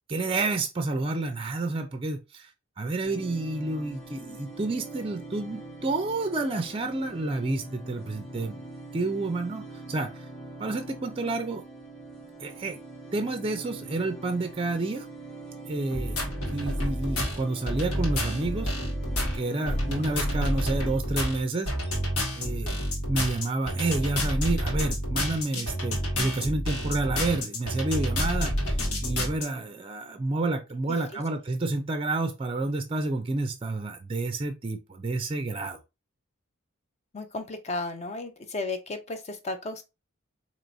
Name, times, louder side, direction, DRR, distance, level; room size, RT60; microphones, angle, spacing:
voice 1, 0.1-2.5 2.8-8.6 8.9-10.1 10.6-11.6 12.4-12.8 13.1-15.1 15.7-16.2 16.5-18.7 19.3-21.7 22.4-22.8 23.1-28.8 29.0-35.8, right 2 dB, 25° right, 0.4 m, -29 dB
sound 1, 3.0-21.0, right 2 dB, 5° left, 0.9 m, -43 dB
sound 2, 15.9-29.5, equal, 75° left, 1.6 m, -29 dB
voice 2, 37.1-39.8, left 2 dB, 30° left, 0.5 m, -34 dB
4.6 x 3.0 x 2.6 m
head